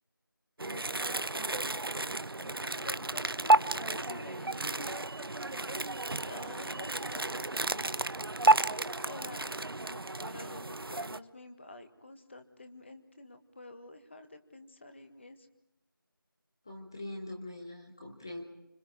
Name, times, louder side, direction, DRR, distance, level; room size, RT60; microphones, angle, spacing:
voice 1, 0.6-1.6 2.4-5.3 6.2-8.0 8.8-9.6 9.9-15.5, left 2 dB, 30° left, 7 dB, 1.7 m, -49 dB
sound 1, 0.6-11.2, right 2 dB, 90° right, 0.7 m, -31 dB
voice 2, 16.6-18.4, left 1 dB, 10° left, 0 dB, 0.8 m, -42 dB
28.5 x 26.0 x 4.9 m, 0.87 s
figure-of-eight pair, 175°, 12 cm